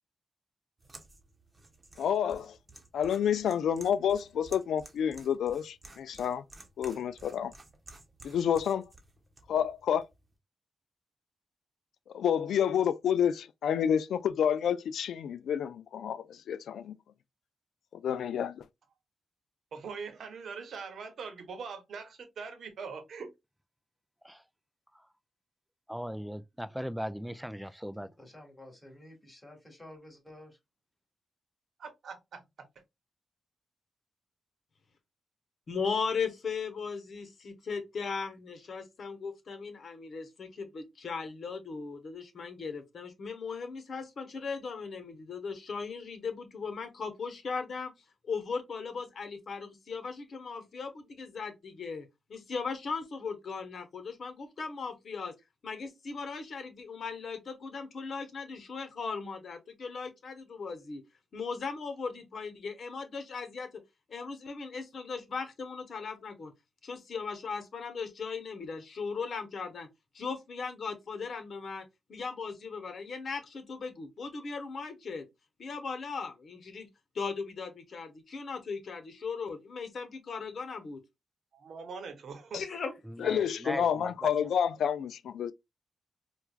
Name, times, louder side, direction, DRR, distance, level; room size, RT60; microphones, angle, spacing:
sound 1, 0.8-10.4, right 2 dB, 25° right, 1.0 m, -54 dB
voice 1, 2.0-2.6 2.9-6.4 6.8-7.5 8.2-8.8 9.5-10.0 12.1-16.9 18.0-18.6 82.5-82.6 83.2-85.5, left 8 dB, 90° left, 0.3 m, -29 dB
voice 2, 19.7-23.3 31.8-32.7 81.5-82.6, right 5 dB, 75° right, 0.9 m, -42 dB
voice 3, 25.9-28.1 83.1-84.3, equal, 5° right, 0.3 m, -38 dB
voice 4, 28.0-30.6, left 1 dB, 15° left, 2.0 m, -52 dB
voice 5, 35.7-47.9 48.2-55.3 55.6-61.0 61.3-63.7 64.1-66.5 66.8-69.9 70.1-75.2 75.6-76.9 77.1-81.0 82.6-82.9, left 5 dB, 65° left, 1.0 m, -38 dB
4.4 x 2.3 x 2.4 m
cardioid pair, 85°, 0 cm